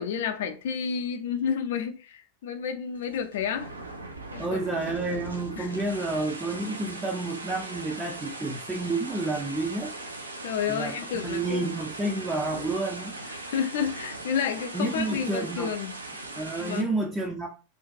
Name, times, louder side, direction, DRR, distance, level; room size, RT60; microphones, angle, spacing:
voice 1, 0.0-3.7 4.3-4.6 5.6-5.7 10.4-11.6 12.5-12.7 13.4-16.0 16.6-16.9, left 7 dB, 55° left, 0.4 m, -30 dB
sound 1, 2.9-16.8, right 2 dB, 80° right, 0.4 m, -39 dB
voice 2, 4.4-9.9 10.7-13.1 14.7-15.7 16.4-17.5, right 2 dB, 15° right, 0.4 m, -30 dB
2.5 x 2.2 x 2.6 m
figure-of-eight pair, 90°, 0 cm